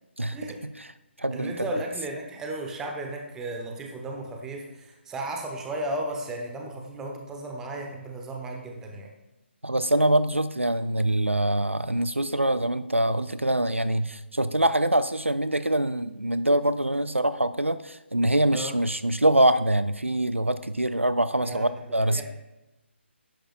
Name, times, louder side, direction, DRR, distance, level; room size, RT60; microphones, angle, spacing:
voice 1, 0.3-0.6 1.3-9.1 18.5-18.8 21.4-22.2, right 1 dB, 10° right, 2 dB, 1.0 m, -35 dB
voice 2, 1.2-1.5 9.6-22.2, right 1 dB, 90° right, 13 dB, 0.5 m, -24 dB
11.5 x 10.0 x 2.4 m, 1.0 s
figure-of-eight pair, 145°, 7 cm